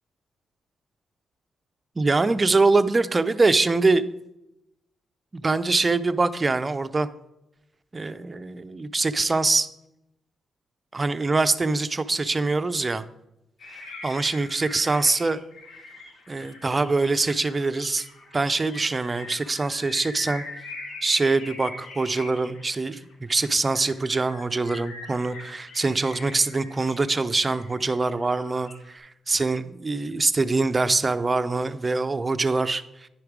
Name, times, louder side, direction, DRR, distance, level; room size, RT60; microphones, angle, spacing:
voice 1, 2.0-4.1 5.3-7.1 7.9-9.7 10.9-13.1 13.7-15.4 16.3-18.1 18.3-20.4 21.0-33.1, right 3 dB, 30° right, 11 dB, 0.6 m, -24 dB
sound 1, 13.6-29.0, left 3 dB, 80° left, 1.4 m, -43 dB
10.0 x 4.9 x 4.7 m, 0.86 s
cardioid pair, 65°, 0 cm